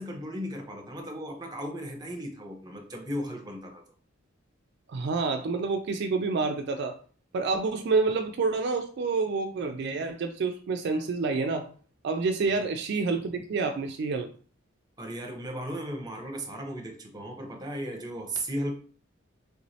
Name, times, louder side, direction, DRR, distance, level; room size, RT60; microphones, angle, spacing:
voice 1, 0.0-3.8 12.5-12.7 15.0-18.7, equal, 20° right, 3 dB, 0.7 m, -36 dB
voice 2, 4.9-7.0 7.3-11.7 12.0-14.3, right 4 dB, 60° right, 6 dB, 0.3 m, -28 dB
3.3 x 3.0 x 2.7 m, 0.42 s
head